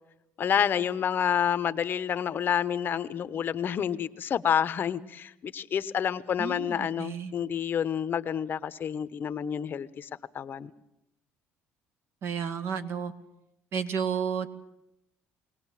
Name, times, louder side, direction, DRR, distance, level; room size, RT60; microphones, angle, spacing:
voice 1, 0.4-10.1 10.3-10.7, left 8 dB, 45° left, 14 dB, 0.9 m, -29 dB
voice 2, 6.4-7.3 12.2-13.1 13.7-14.5, right 7 dB, 55° right, 9 dB, 1.6 m, -31 dB
22.5 x 18.5 x 7.5 m, 0.85 s
cardioid pair, 105°, 5 cm